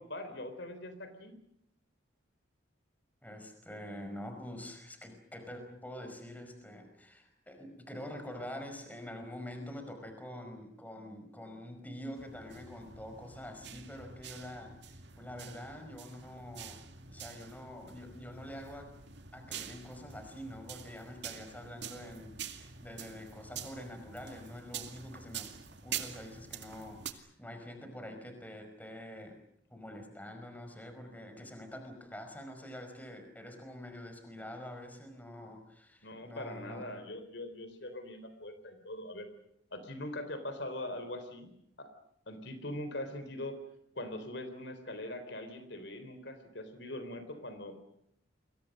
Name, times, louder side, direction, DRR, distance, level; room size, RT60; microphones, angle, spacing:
voice 1, 0.0-1.4 36.0-39.3 39.7-41.5 41.8-41.9 42.3-43.6 44.0-47.7, left 1 dB, 60° left, 9 dB, 3.9 m, -42 dB
voice 2, 3.2-16.8 17.1-18.9 19.3-25.5 25.8-29.4 29.7-36.9, left 1 dB, 10° left, 6 dB, 5.1 m, -46 dB
sound 1, 12.1-27.1, right 8 dB, 60° right, 2.2 m, -46 dB
30.0 x 23.0 x 6.6 m, 0.76 s
head